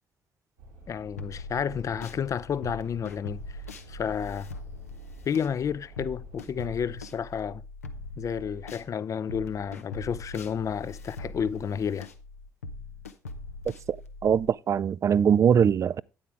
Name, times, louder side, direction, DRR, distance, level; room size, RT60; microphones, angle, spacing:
sound 1, 0.6-6.6, right 1 dB, 85° right, 3.9 m, -49 dB
voice 1, 0.9-3.6 3.9-4.5 5.2-7.6 8.2-12.1, left 7 dB, 40° left, 0.5 m, -31 dB
sound 2, 1.2-2.2 2.6-8.9 9.3-14.5, left 2 dB, 85° left, 0.6 m, -42 dB
voice 2, 14.2-16.0, right 8 dB, 40° right, 0.4 m, -22 dB
9.4 x 8.7 x 3.4 m
figure-of-eight pair, 45°, 8 cm